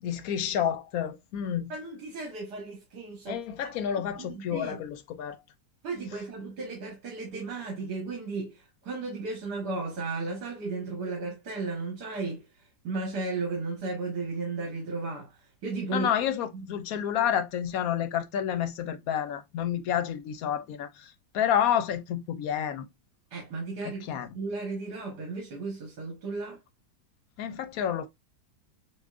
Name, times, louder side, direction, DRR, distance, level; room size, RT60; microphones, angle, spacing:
voice 1, 0.0-1.7 3.3-5.4 15.9-22.9 24.1-24.3 27.4-28.1, left 9 dB, 70° left, 0.9 m, -29 dB
voice 2, 1.7-3.7 4.2-4.8 5.8-16.1 16.5-16.7 23.3-26.6, right 3 dB, 75° right, 1.9 m, -35 dB
6.9 x 2.4 x 2.4 m
omnidirectional pair, 1.8 m